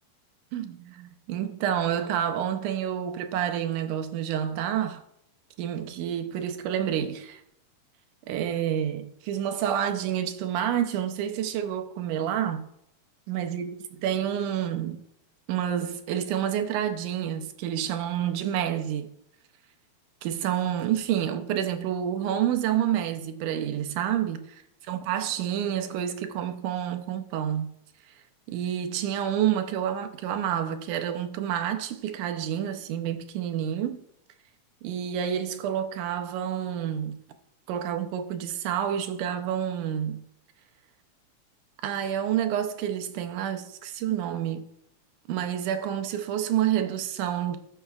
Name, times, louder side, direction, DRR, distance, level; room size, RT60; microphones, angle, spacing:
voice 1, 0.5-5.0 5.6-7.4 8.3-12.7 13.3-15.0 15.5-19.1 20.2-24.4 24.9-27.7 28.5-34.0 34.8-37.2 37.7-40.2 41.8-44.6 45.3-47.6, right 10 dB, 85° right, 2.3 m, -28 dB
18.5 x 6.9 x 2.4 m
omnidirectional pair, 3.5 m